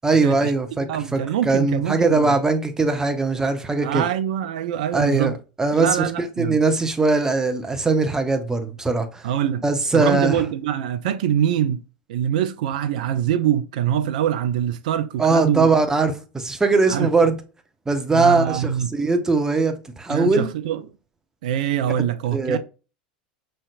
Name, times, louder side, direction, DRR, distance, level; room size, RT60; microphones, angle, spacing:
voice 1, 0.0-4.0 4.9-5.9 6.2-9.3 9.6-10.4 15.2-17.4 17.9-20.5 22.3-22.6, right 3 dB, 10° right, 0.8 m, -20 dB
voice 2, 0.9-2.4 3.8-5.4 5.8-6.6 9.2-9.6 9.9-11.8 12.1-15.7 16.9-17.1 18.1-18.9 20.1-20.8 21.4-22.6, right 10 dB, 65° right, 0.4 m, -24 dB
5.5 x 3.3 x 2.4 m
hypercardioid pair, 85°, 5 cm